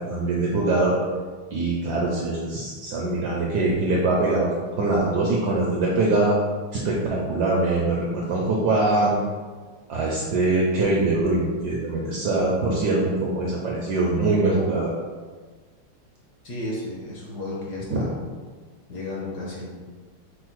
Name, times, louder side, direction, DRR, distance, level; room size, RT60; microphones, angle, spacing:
voice 1, 0.1-0.9 1.5-6.4 6.8-9.1 9.9-14.9 17.9-18.0, right 2 dB, 75° right, -3 dB, 1.0 m, -23 dB
voice 2, 16.4-18.1 18.9-19.7, left 2 dB, 60° left, -4 dB, 1.1 m, -33 dB
5.3 x 2.1 x 4.5 m, 1.5 s
omnidirectional pair, 2.3 m